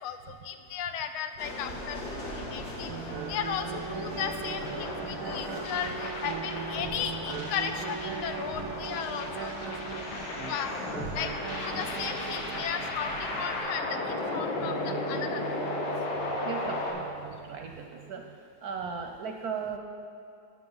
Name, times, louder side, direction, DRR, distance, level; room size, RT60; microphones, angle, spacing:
voice 1, 0.0-2.0 2.3-2.9 3.3-9.5 10.5-10.7 11.1-11.3 11.6-15.6, left 8 dB, 90° left, 8 dB, 1.5 m, -35 dB
sound 1, 1.4-13.6, left 1 dB, 55° left, 1.9 m, -40 dB
sound 2, 2.9-18.4, right 7 dB, 90° right, 1.4 m, -40 dB
sound 3, 4.4-16.9, left 2 dB, 75° left, 2.0 m, -35 dB
voice 2, 16.4-18.2 18.6-19.8, right 6 dB, 65° right, 3 dB, 0.9 m, -37 dB
11.5 x 8.9 x 3.9 m, 2.5 s
omnidirectional pair, 2.2 m